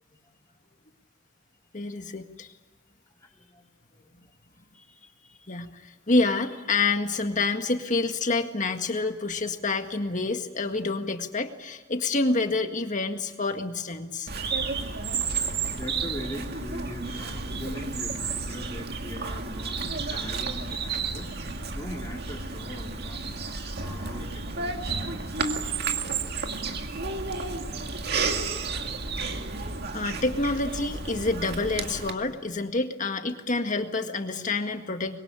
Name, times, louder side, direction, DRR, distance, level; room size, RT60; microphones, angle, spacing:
voice 1, 1.7-2.5 4.8-4.9 5.5-14.3 14.9-15.0 29.9-35.2, left 3 dB, 40° left, 6 dB, 1.8 m, -28 dB
voice 2, 3.1-4.3 10.7-10.8 13.6-13.7 14.8-26.7 27.6-27.9 32.1-32.4 34.6-34.7, equal, 15° left, -1 dB, 4.1 m, -42 dB
Bird vocalization bird call bird song, 14.3-32.1, right 4 dB, 55° right, 2.0 m, -32 dB
25.5 x 22.5 x 9.8 m, 1.2 s
head